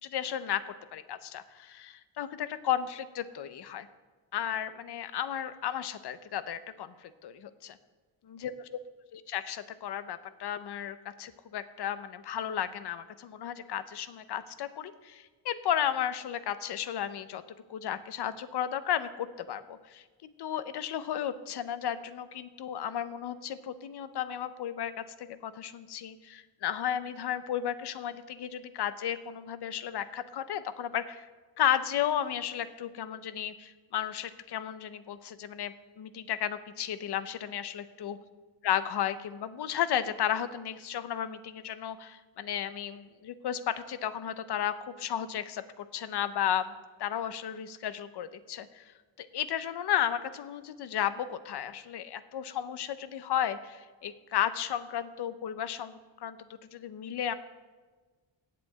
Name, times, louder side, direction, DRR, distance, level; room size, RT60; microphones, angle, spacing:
voice 1, 0.0-3.9 4.3-7.8 8.3-8.5 9.1-17.4 17.7-31.3 31.6-38.2 38.6-48.9 49.2-57.3, left 10 dB, 55° left, 13 dB, 0.6 m, -34 dB
7.6 x 7.6 x 8.3 m, 1.4 s
wide cardioid pair, 170°, 47 cm